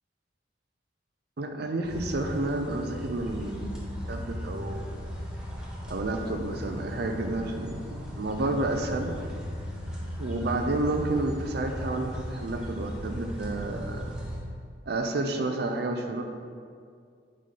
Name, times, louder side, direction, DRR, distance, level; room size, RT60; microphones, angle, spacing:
voice 1, 1.4-4.9 5.9-9.1 10.2-14.1 14.9-16.2, right 2 dB, 60° right, 5 dB, 0.5 m, -30 dB
sound 1, 1.8-14.4, equal, 5° right, 1.0 m, -37 dB
6.5 x 5.1 x 4.1 m, 2.2 s
head